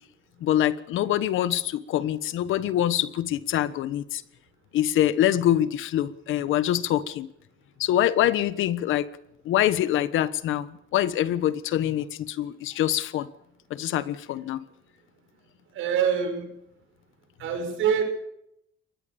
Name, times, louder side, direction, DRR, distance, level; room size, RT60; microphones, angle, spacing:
voice 1, 0.4-4.2 4.7-7.3 7.8-9.1 9.4-10.7 10.9-13.3 13.7-14.6, left 12 dB, 85° left, 1.2 m, -25 dB
voice 2, 15.7-16.5 17.4-18.0, right 7 dB, 90° right, 6.1 m, -25 dB
23.5 x 20.0 x 7.0 m
cardioid pair, 90°, 20 cm